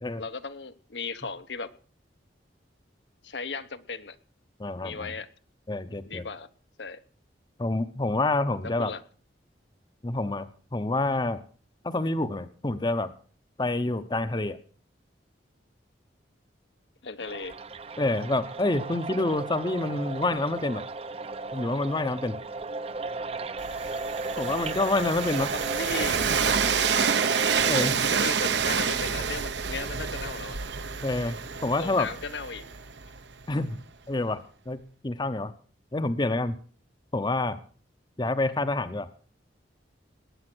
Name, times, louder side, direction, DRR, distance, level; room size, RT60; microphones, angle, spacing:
voice 1, 0.2-1.7 3.2-4.2 4.8-5.3 6.0-6.5 6.8-7.0 8.8-9.0 17.0-17.5 25.5-26.4 28.1-30.6 31.8-32.6, left 4 dB, 75° left, 10 dB, 1.1 m, -36 dB
voice 2, 4.6-5.1 5.7-6.2 7.6-8.9 10.0-11.4 11.8-13.1 13.6-14.6 18.0-20.8 21.5-22.4 24.4-25.5 27.6-28.0 31.0-32.1 33.5-33.8 34.1-34.4 34.7-34.8 35.0-35.5 35.9-36.5 37.1-37.6 38.2-39.1, left 2 dB, 25° left, 12 dB, 0.7 m, -27 dB
sound 1, 17.2-27.9, right 3 dB, 35° right, 0.6 m, -35 dB
Train, 23.6-33.4, right 6 dB, 75° right, 1.0 m, -28 dB
19.5 x 8.8 x 6.1 m, 0.42 s
head